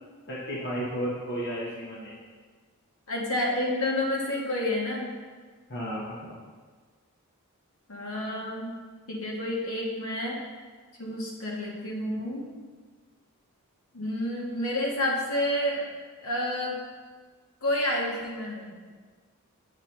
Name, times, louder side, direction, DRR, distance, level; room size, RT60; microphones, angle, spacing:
voice 1, 0.3-2.2 5.7-6.3, equal, 50° left, -5 dB, 1.0 m, -33 dB
voice 2, 3.1-5.1 7.9-8.7 9.1-10.4 11.0-12.5 13.9-15.9 16.2-16.8 17.6-18.7, left 1 dB, 70° left, -2 dB, 1.3 m, -29 dB
7.3 x 3.2 x 5.8 m, 1.5 s
head